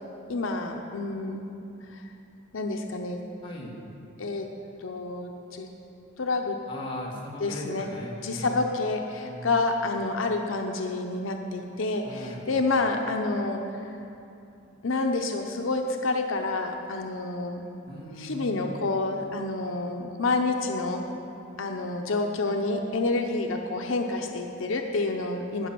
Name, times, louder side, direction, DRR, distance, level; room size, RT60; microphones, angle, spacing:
voice 1, 0.3-1.5 2.5-3.2 4.2-4.5 4.8-5.7 6.2-6.6 7.4-7.9 8.2-13.6 14.8-17.6 18.2-21.0 21.6-25.7, left 3 dB, 85° left, 3 dB, 0.7 m, -28 dB
voice 2, 3.4-3.8 6.7-8.6 9.3-9.7 12.0-12.5 17.9-18.7, left 1 dB, 25° left, -4 dB, 1.8 m, -38 dB
15.5 x 6.1 x 5.9 m, 2.8 s
head